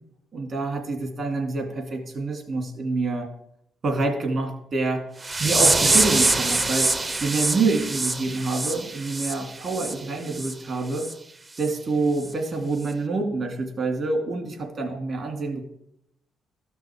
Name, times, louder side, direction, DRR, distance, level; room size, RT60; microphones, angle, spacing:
voice 1, 0.3-3.3 3.8-5.0 5.4-11.0 11.6-15.6, right 3 dB, 50° right, 3 dB, 2.3 m, -27 dB
sound 1, 5.2-9.9 10.3-10.5 11.0-11.1 11.6-11.7 12.2-12.3, right 2 dB, 25° right, 0.6 m, -24 dB
13.0 x 6.1 x 3.6 m, 0.76 s
cardioid pair, 90°, 0 cm